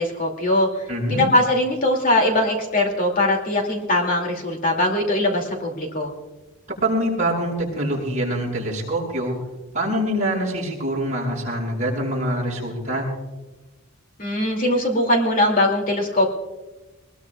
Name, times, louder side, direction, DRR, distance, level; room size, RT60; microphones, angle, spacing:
voice 1, 0.0-6.1 14.2-16.3, left 1 dB, 40° left, 1 dB, 2.7 m, -21 dB
voice 2, 0.9-1.3 6.8-9.4 9.7-13.1, right 1 dB, 35° right, -4 dB, 7.1 m, -24 dB
22.5 x 21.0 x 2.4 m, 1.1 s
head